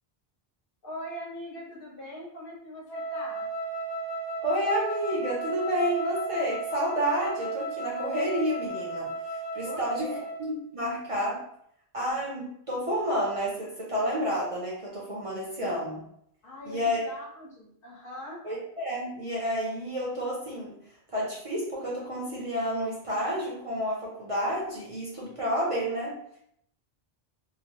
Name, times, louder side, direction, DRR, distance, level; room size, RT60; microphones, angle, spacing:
voice 1, 0.8-3.5 9.6-10.2 16.4-18.4, equal, 60° left, -4 dB, 1.1 m, -41 dB
Wind instrument woodwind instrument, 2.9-10.5, right 2 dB, 85° left, 0.8 m, -34 dB
voice 2, 4.4-9.1 9.5-10.1 10.4-11.4 11.9-16.0 16.6-17.0 18.4-20.7 21.1-26.2, equal, 40° right, -5 dB, 0.6 m, -30 dB
2.9 x 2.0 x 2.8 m, 0.72 s
omnidirectional pair, 1.0 m